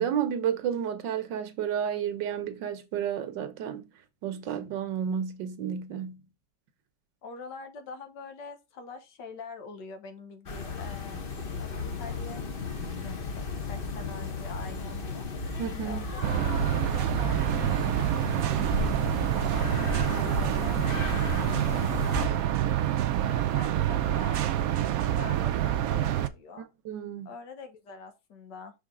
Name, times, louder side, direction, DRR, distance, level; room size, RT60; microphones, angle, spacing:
voice 1, 0.0-3.9 4.2-6.2 15.6-16.1 26.6-27.3, right 8 dB, 85° right, 1.6 m, -31 dB
voice 2, 7.2-11.2 11.6-15.3 15.8-19.7 20.3-22.9 23.2-26.7 27.3-28.7, left 4 dB, 80° left, 1.7 m, -45 dB
sound 1, 10.5-22.3, left 3 dB, 40° left, 0.9 m, -34 dB
sound 2, 16.2-26.3, right 11 dB, 70° right, 0.9 m, -27 dB
5.9 x 5.0 x 3.7 m
omnidirectional pair, 1.9 m